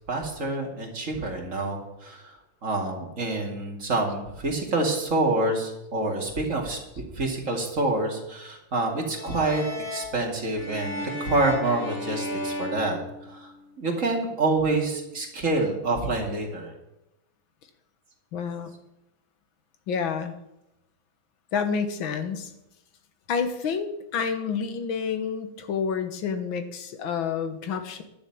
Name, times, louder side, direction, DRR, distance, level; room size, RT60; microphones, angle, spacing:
voice 1, 0.1-2.4 2.6-13.0 13.3-13.5 13.8-16.7, right 2 dB, 40° right, 1 dB, 2.6 m, -27 dB
sound 1, 9.1-13.7, left 1 dB, 30° left, 2.0 m, -35 dB
voice 2, 18.3-18.7 19.9-20.3 21.5-22.5 23.3-28.0, left 6 dB, 75° left, 8 dB, 2.0 m, -29 dB
11.0 x 7.0 x 8.6 m, 0.89 s
omnidirectional pair, 2.2 m